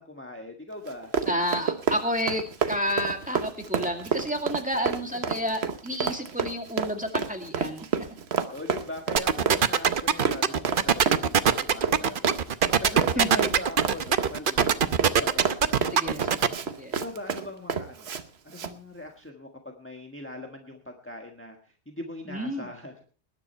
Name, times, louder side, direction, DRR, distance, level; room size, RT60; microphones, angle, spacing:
voice 1, 0.0-1.1 5.1-5.2 8.5-12.4 12.8-18.1 18.4-21.6 21.9-23.1, left 1 dB, 10° left, 2 dB, 1.4 m, -40 dB
Run, 0.8-18.2 18.5-18.7, right 6 dB, 70° right, 1.2 m, -29 dB
voice 2, 1.3-7.9 13.2-13.6 15.9-16.4 16.8-16.9 22.3-22.7, equal, 5° right, 3 dB, 2.1 m, -30 dB
sound 1, 9.2-16.5, right 7 dB, 55° right, 0.9 m, -21 dB
20.0 x 9.9 x 4.4 m, 0.40 s
omnidirectional pair, 1.1 m